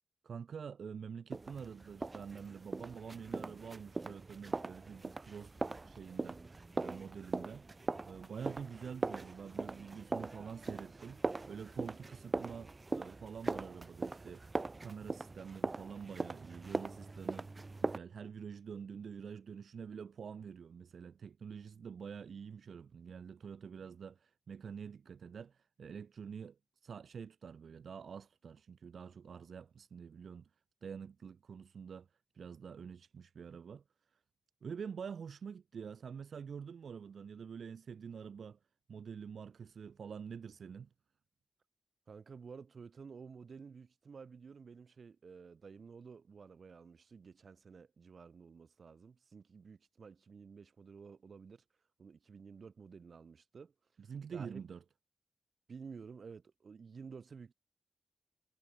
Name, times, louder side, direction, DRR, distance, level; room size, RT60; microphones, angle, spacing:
voice 1, 0.2-7.7 8.1-14.5 14.8-17.5 17.8-30.5 30.8-34.2 34.6-38.6 38.9-40.9 54.0-54.8, right 6 dB, 80° right, 2.6 m, -47 dB
sound 1, 1.3-18.0, right 3 dB, 30° right, 0.8 m, -41 dB
voice 2, 42.1-51.6 52.0-53.7 54.3-54.6 55.7-57.5, right 5 dB, 55° right, 5.5 m, -52 dB
wide cardioid pair, 160°, 0 cm